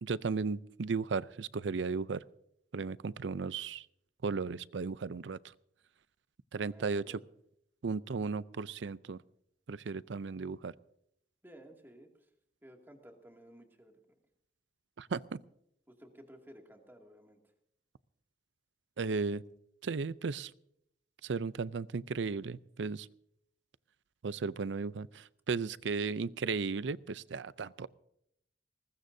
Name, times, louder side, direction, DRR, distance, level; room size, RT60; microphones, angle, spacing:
voice 1, 0.0-2.2 2.7-3.8 4.2-5.4 6.5-7.2 7.8-9.2 9.7-10.7 15.0-15.4 19.0-19.4 19.8-20.5 21.2-23.1 24.2-27.9, right 4 dB, 85° right, 18 dB, 0.5 m, -35 dB
voice 2, 6.6-7.2 11.4-12.3 12.6-14.2 15.9-17.5, right 1 dB, 10° right, 2 dB, 2.3 m, -56 dB
21.0 x 20.0 x 2.7 m, 0.75 s
head